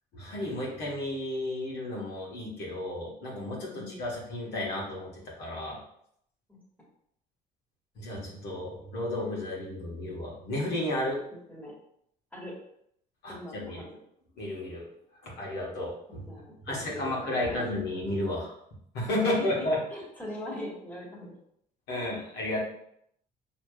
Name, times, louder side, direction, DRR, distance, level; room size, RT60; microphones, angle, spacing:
voice 1, 0.1-5.1 5.4-5.8 7.9-11.2 13.2-13.8 14.4-14.9 15.2-16.3 16.6-18.5 18.9-19.8 21.9-22.6, left 1 dB, 75° left, -4 dB, 1.4 m, -32 dB
voice 2, 13.3-13.9 16.1-17.7 19.2-21.4 21.9-22.0, left 1 dB, 10° left, -5 dB, 1.5 m, -41 dB
4.8 x 3.1 x 2.4 m, 0.71 s
cardioid pair, 110°, 17 cm